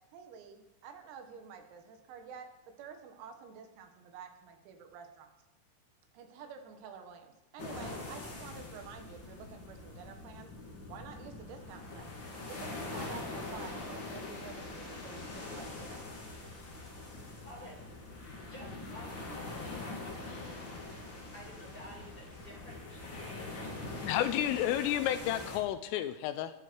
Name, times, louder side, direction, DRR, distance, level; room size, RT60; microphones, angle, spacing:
voice 1, 0.0-2.5 2.8-5.3 6.1-10.5 10.9-12.1 12.5-16.2, right 6 dB, 85° right, 5 dB, 4.5 m, -49 dB
sound 1, 7.6-25.6, left 2 dB, 40° left, 1.6 m, -43 dB
voice 2, 17.4-17.8 18.5-19.2 19.5-20.9 21.3-23.6 24.0-25.1, equal, 10° left, -4 dB, 6.0 m, -51 dB
voice 3, 24.0-26.5, left 12 dB, 80° left, 11 dB, 3.2 m, -31 dB
22.5 x 11.5 x 4.7 m, 0.95 s
omnidirectional pair, 5.9 m